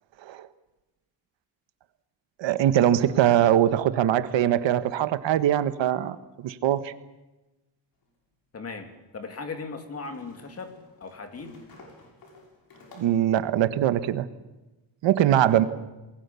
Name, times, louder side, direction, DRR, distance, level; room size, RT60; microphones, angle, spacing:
voice 1, 2.4-6.2 6.4-6.9 13.0-14.3 15.0-15.6, right 11 dB, 80° right, 12 dB, 1.4 m, -22 dB
sound 1, 8.0-8.1 10.0-13.4, left 2 dB, 55° left, 7.0 m, -51 dB
voice 2, 8.5-10.7 11.0-11.6, left 4 dB, 35° left, 6 dB, 2.8 m, -38 dB
28.0 x 21.0 x 7.0 m, 1.1 s
cardioid pair, 165°, 44 cm